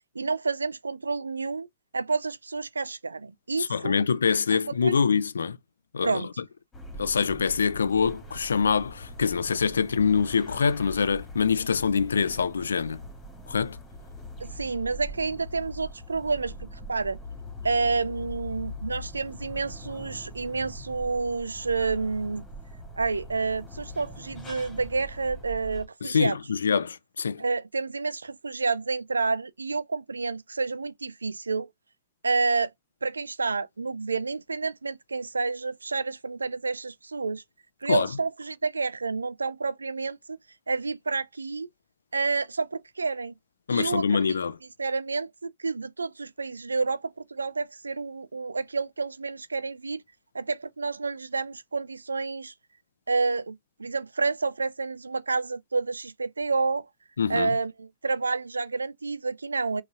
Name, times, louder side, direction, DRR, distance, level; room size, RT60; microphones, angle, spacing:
voice 1, 0.2-1.7 1.9-3.9 4.5-4.9 6.0-6.3 14.4-17.2 17.6-22.4 23.0-26.4 27.4-31.7 32.2-32.7 33.0-37.4 37.8-40.4 40.7-41.7 42.1-43.3 43.7-44.4 44.8-50.0 50.3-52.5 53.1-56.9 57.3-59.8, right 4 dB, 90° right, 0.3 m, -29 dB
voice 2, 3.6-5.6 5.9-6.3 7.0-13.0 13.5-13.8 26.0-27.4 37.9-38.1 43.7-44.5 57.2-57.6, left 6 dB, 80° left, 0.4 m, -25 dB
sound 1, 6.7-25.9, left 1 dB, 15° left, 2.1 m, -42 dB
5.2 x 2.8 x 2.3 m
hypercardioid pair, 110°, 0 cm